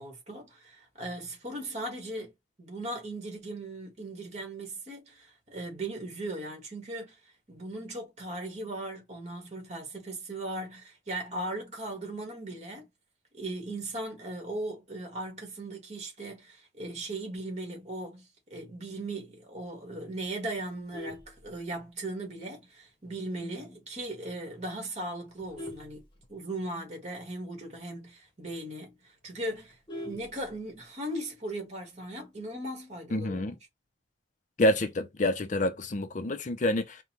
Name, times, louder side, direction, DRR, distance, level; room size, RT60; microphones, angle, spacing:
voice 1, 0.0-2.3 2.6-7.1 7.5-12.9 13.3-26.0 26.3-28.9 29.2-33.5, right 1 dB, 35° right, 1.5 m, -38 dB
Vehicle horn car horn honking, 20.6-22.1 22.6-22.8 23.2-23.3 23.7-23.8 24.1-24.4 25.0-26.8 27.2-27.3 27.6-27.7 28.1-28.2 28.5-28.6 28.9-30.9 32.1-32.6, left 1 dB, 25° left, 1.0 m, -44 dB
voice 2, 33.1-33.5 34.6-37.0, left 1 dB, 40° left, 0.5 m, -27 dB
5.1 x 2.2 x 2.9 m
head